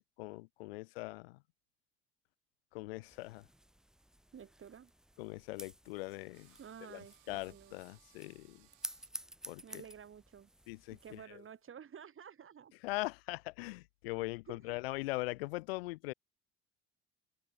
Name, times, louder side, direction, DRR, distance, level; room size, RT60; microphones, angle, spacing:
voice 1, 0.2-1.4 2.7-3.4 5.2-6.5 6.9-7.0 7.3-8.7 9.5-9.8 10.7-11.2 12.8-16.1, left 22 dB, 90° left, 0.8 m, -41 dB
sound 1, 3.0-11.2, right 1 dB, ahead, 0.7 m, -52 dB
voice 2, 4.3-4.9 6.6-7.8 9.6-10.5 10.9-12.7 14.5-14.8, right 8 dB, 45° right, 6.0 m, -52 dB
sound 2, 6.3-11.7, right 36 dB, 80° right, 5.7 m, -69 dB
open air
hypercardioid pair, 65°, 29 cm